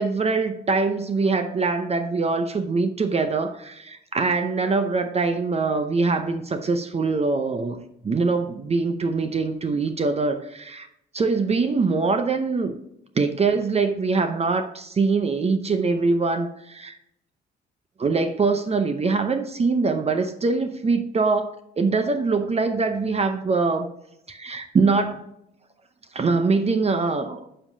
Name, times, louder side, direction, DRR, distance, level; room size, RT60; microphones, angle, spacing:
voice 1, 0.0-7.8 8.0-10.9 11.1-12.8 13.2-17.0 18.0-23.9 24.3-25.2 26.1-27.4, right 4 dB, 30° right, 8 dB, 0.6 m, -23 dB
9.5 x 5.6 x 2.7 m, 0.78 s
cardioid pair, 90°, 20 cm